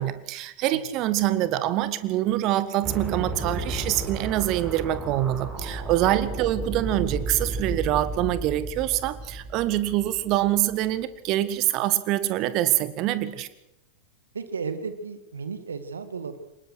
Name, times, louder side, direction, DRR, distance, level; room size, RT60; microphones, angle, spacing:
voice 1, 0.0-13.5, right 14 dB, 40° right, 14 dB, 1.6 m, -25 dB
sound 1, 2.8-10.9, right 2 dB, 20° right, 6.0 m, -33 dB
voice 2, 14.3-16.4, right 5 dB, 70° right, 11 dB, 2.0 m, -34 dB
24.0 x 20.0 x 6.4 m, 0.87 s
figure-of-eight pair, 90°, 0 cm